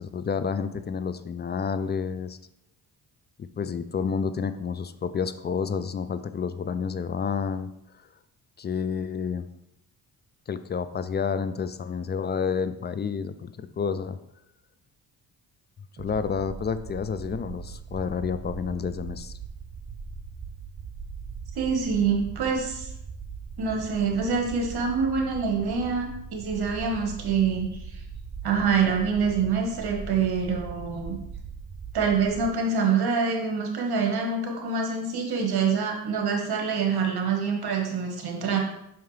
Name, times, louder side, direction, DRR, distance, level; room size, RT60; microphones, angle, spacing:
voice 1, 0.0-2.4 3.6-7.7 8.6-9.5 10.5-14.2 16.0-19.3, left 6 dB, 25° left, 12 dB, 0.3 m, -29 dB
sound 1, 16.0-32.5, right 5 dB, 25° right, 0.6 m, -40 dB
voice 2, 21.5-22.9 23.6-27.7 28.4-31.2 31.9-38.6, right 5 dB, 65° right, 1 dB, 1.5 m, -26 dB
5.7 x 5.5 x 3.3 m, 0.81 s
cardioid pair, 85°, 41 cm